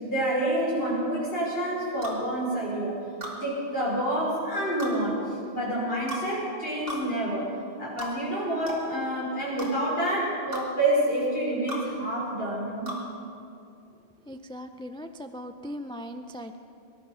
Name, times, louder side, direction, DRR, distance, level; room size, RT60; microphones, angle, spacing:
voice 1, 0.1-2.9 3.4-5.2 5.5-7.5 7.8-12.9, right 1 dB, 60° left, -6 dB, 5.6 m, -28 dB
sound 1, 2.0-2.2 3.2-3.4 4.8-5.0 6.1-6.3 6.9-7.0 8.0-8.1 8.7-8.8 9.6-9.7 10.5-10.7 11.7-11.8 12.9-13.0, equal, 55° right, 2.9 m, -35 dB
voice 2, 14.3-16.6, equal, 5° left, 7 dB, 0.4 m, -39 dB
21.0 x 12.0 x 5.7 m, 2.6 s
omnidirectional pair, 1.1 m